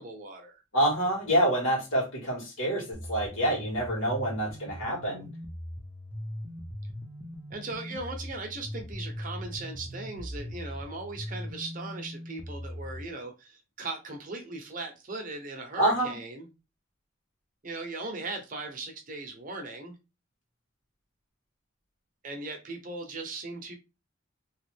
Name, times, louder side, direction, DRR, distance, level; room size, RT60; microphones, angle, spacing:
voice 1, 0.0-0.6 7.5-16.5 17.6-19.9 22.2-23.8, right 3 dB, 40° right, 0.8 m, -38 dB
voice 2, 0.7-5.2 15.8-16.1, right 1 dB, 90° left, 1.8 m, -27 dB
sound 1, 2.9-13.0, equal, 10° right, 0.6 m, -40 dB
3.0 x 2.4 x 3.3 m
head